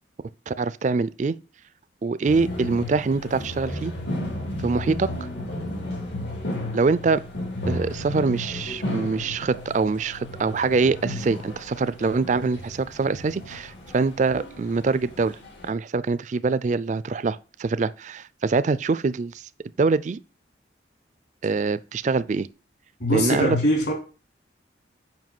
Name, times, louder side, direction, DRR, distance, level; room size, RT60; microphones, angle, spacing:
voice 1, 0.5-1.3 2.0-3.9 4.6-5.1 6.7-7.2 7.7-15.4 15.6-19.5 19.8-20.2 21.4-22.5 23.1-23.6, right 4 dB, 40° right, 0.4 m, -24 dB
sound 1, 2.2-15.7, left 1 dB, 85° left, 3.9 m, -34 dB
voice 2, 23.0-23.9, left 1 dB, 65° left, 3.2 m, -22 dB
7.4 x 5.4 x 5.9 m
head